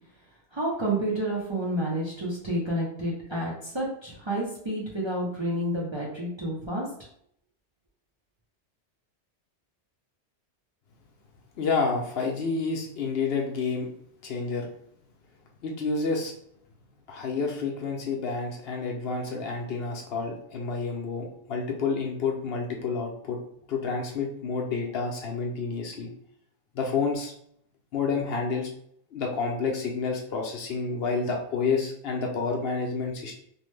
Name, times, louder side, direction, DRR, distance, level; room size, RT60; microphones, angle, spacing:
voice 1, 0.5-6.8, right 1 dB, 30° right, -5 dB, 0.5 m, -29 dB
voice 2, 11.6-13.9 14.2-14.7 15.6-16.3 17.1-23.4 23.7-26.1 26.7-27.3 27.9-28.7 29.1-33.4, left 4 dB, 65° left, 0 dB, 0.8 m, -29 dB
3.0 x 2.1 x 3.1 m, 0.67 s
omnidirectional pair, 1.2 m